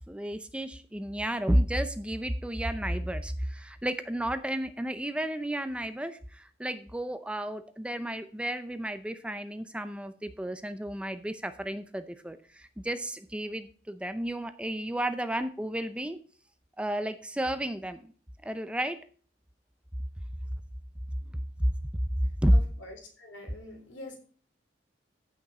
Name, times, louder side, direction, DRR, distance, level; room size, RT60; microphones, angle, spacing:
voice 1, 0.1-16.2 16.8-18.1 18.4-19.0 21.6-21.7 22.4-22.6, equal, 5° right, 10 dB, 0.6 m, -31 dB
voice 2, 22.5-24.2, left 1 dB, 85° left, 2 dB, 3.6 m, -45 dB
14.5 x 6.3 x 4.2 m, 0.44 s
head